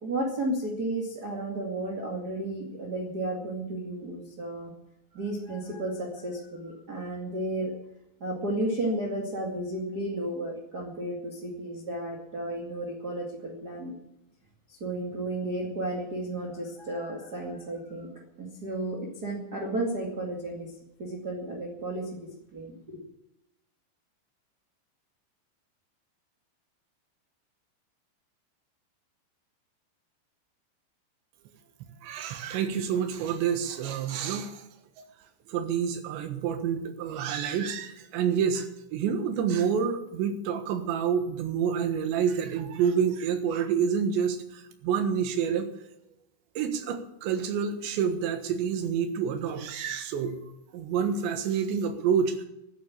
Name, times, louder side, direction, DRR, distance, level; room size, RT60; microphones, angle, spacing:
voice 1, 0.0-4.7 5.1-7.7 8.2-14.0 14.7-18.1 18.4-20.7 21.0-23.0, right 1 dB, 45° right, -1 dB, 1.2 m, -33 dB
voice 2, 32.0-34.6 35.5-45.7 46.6-50.4 50.7-52.3, right 7 dB, 70° right, 7 dB, 3.5 m, -28 dB
13.5 x 9.8 x 8.7 m, 0.83 s
omnidirectional pair, 5.8 m